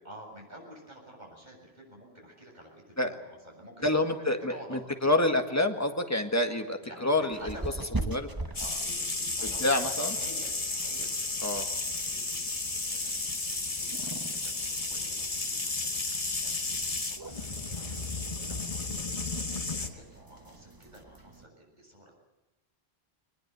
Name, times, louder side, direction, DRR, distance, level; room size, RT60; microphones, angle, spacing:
voice 1, 0.0-5.1 6.8-8.1 8.5-22.2, right 1 dB, 45° right, -1 dB, 7.6 m, -51 dB
voice 2, 3.8-7.5 8.1-8.2 9.4-10.2 11.4-11.7, left 2 dB, 15° left, 5 dB, 1.8 m, -27 dB
sound 1, 7.3-21.5, right 2 dB, 20° right, 1.3 m, -43 dB
sound 2, 8.5-19.9, left 3 dB, 35° left, 1.6 m, -33 dB
21.5 x 20.5 x 8.2 m, 1.0 s
omnidirectional pair, 1.1 m